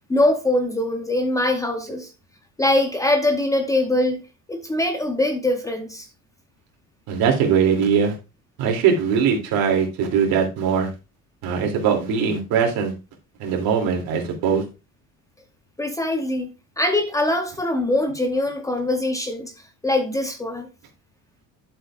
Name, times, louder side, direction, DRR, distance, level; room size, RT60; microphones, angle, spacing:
voice 1, 0.1-2.1 2.6-4.2 4.5-6.1 15.8-19.5 19.8-20.7, left 1 dB, 10° left, 0.7 m, -22 dB
voice 2, 7.1-8.1 8.6-10.9 11.4-12.9 13.4-14.6, right 7 dB, 75° right, 2.8 m, -21 dB
12.0 x 7.4 x 2.4 m
cardioid pair, 180°, 36 cm